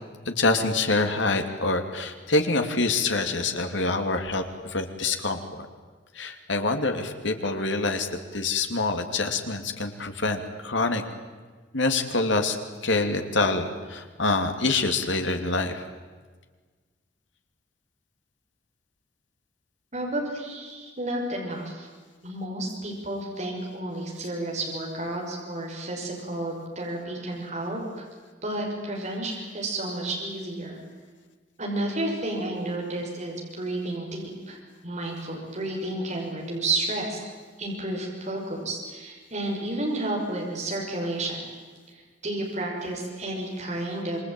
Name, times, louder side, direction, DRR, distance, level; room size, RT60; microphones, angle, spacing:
voice 1, 0.3-5.7 6.2-8.1 8.3-11.0 11.7-12.6 12.8-15.8, left 3 dB, 70° left, 6 dB, 2.8 m, -26 dB
voice 2, 19.9-21.9 22.2-28.1 28.4-30.8 31.6-34.6 34.8-37.3 37.6-41.4 41.9-44.2, right 1 dB, 35° right, -1 dB, 6.1 m, -31 dB
27.0 x 23.0 x 9.1 m, 1.4 s
head